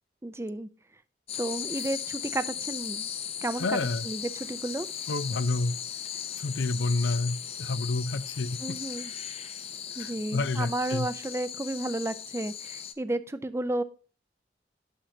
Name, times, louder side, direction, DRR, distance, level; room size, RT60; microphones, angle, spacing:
voice 1, 0.2-0.7 1.4-3.1 3.4-3.8 4.0-4.9 8.6-9.1 10.0-13.8, right 1 dB, 15° right, 0.4 m, -32 dB
sound 1, 1.3-12.9, left 9 dB, 35° left, 0.6 m, -37 dB
voice 2, 3.6-4.1 5.1-5.8 6.4-8.8 10.0-11.1, left 3 dB, 85° left, 0.6 m, -29 dB
9.4 x 6.4 x 2.7 m
head